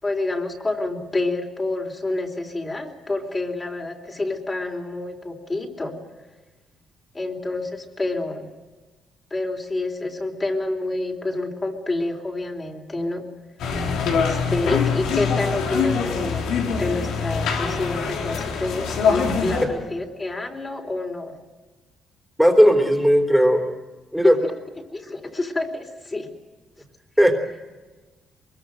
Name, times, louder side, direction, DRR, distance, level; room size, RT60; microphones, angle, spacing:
voice 1, 0.0-6.0 7.1-8.5 9.3-13.3 14.1-21.3 24.2-24.5 24.9-26.3, left 2 dB, 25° left, 2 dB, 4.0 m, -28 dB
sound 1, 13.6-19.6, left 6 dB, 90° left, 4.0 m, -24 dB
voice 2, 22.4-23.6 24.1-24.4 27.2-27.3, equal, ahead, 3 dB, 3.6 m, -16 dB
23.5 x 22.5 x 7.8 m, 1.3 s
cardioid pair, 90°, 0 cm